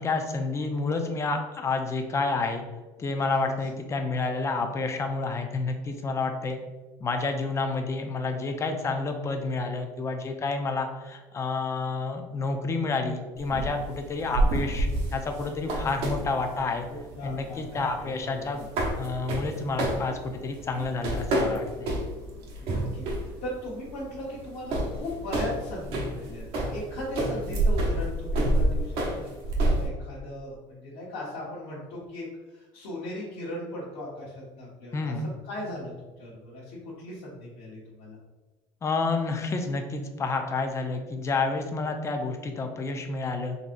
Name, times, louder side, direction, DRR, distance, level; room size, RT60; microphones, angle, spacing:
voice 1, 0.0-2.6 3.0-6.6 7.0-16.9 17.2-18.6 19.0-21.9 34.9-35.2 38.8-43.6, left 3 dB, 25° left, 5 dB, 0.5 m, -29 dB
voice 2, 3.0-3.5 16.9-18.6 22.6-26.4 26.7-29.3 29.6-35.1 35.4-38.2, left 1 dB, 80° left, -9 dB, 1.1 m, -38 dB
sound 1, 13.4-29.9, right 1 dB, 60° right, 0.9 m, -29 dB
3.9 x 3.0 x 2.5 m, 1.3 s
cardioid pair, 115°, 11 cm